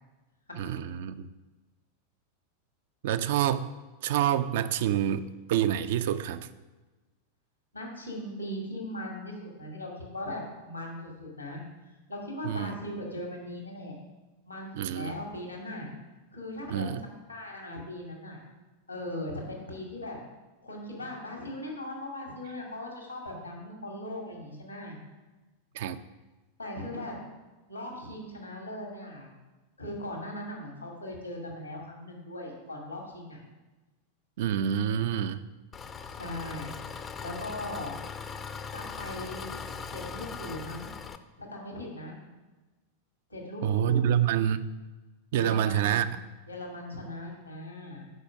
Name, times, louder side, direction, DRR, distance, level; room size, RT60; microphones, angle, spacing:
voice 1, 0.6-1.3 3.0-3.7 4.0-6.5 12.4-12.7 14.8-15.1 16.7-17.0 25.7-26.0 34.4-35.4 43.6-44.7 45.3-46.1, right 10 dB, 55° right, 12 dB, 0.4 m, -27 dB
voice 2, 7.7-11.6 12.1-14.0 14.4-15.9 16.3-17.0 17.3-18.4 18.9-20.2 20.6-25.0 26.6-27.2 27.7-29.3 29.8-33.4 36.0-36.7 37.2-37.9 38.7-39.5 39.9-40.9 41.4-42.1 43.3-44.1 45.4-46.0 46.5-48.0, left 1 dB, 85° left, 0 dB, 2.0 m, -39 dB
Engine, 35.7-41.2, left 5 dB, 20° left, 0.5 m, -40 dB
6.4 x 4.9 x 6.4 m, 1.2 s
figure-of-eight pair, 90°, 0 cm